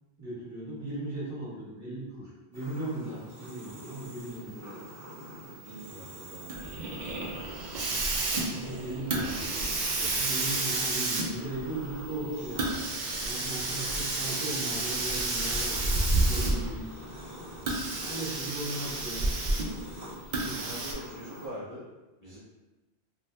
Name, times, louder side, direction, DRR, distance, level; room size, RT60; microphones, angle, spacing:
voice 1, 0.2-4.8 6.8-7.0 7.2-7.5 7.9-12.6 13.2-17.2 18.0-19.3 20.4-20.7, right 1 dB, 15° right, -11 dB, 1.3 m, -38 dB
sound 1, 2.5-21.5, right 1 dB, 35° right, 1.0 m, -46 dB
voice 2, 5.6-6.7 13.8-13.9 20.5-21.8 22.2-22.4, equal, 25° left, -10 dB, 0.5 m, -43 dB
Hiss, 6.5-16.8 17.6-19.8 20.3-20.9, right 2 dB, 55° right, 0.5 m, -30 dB
2.7 x 2.2 x 3.3 m, 1.1 s
omnidirectional pair, 1.2 m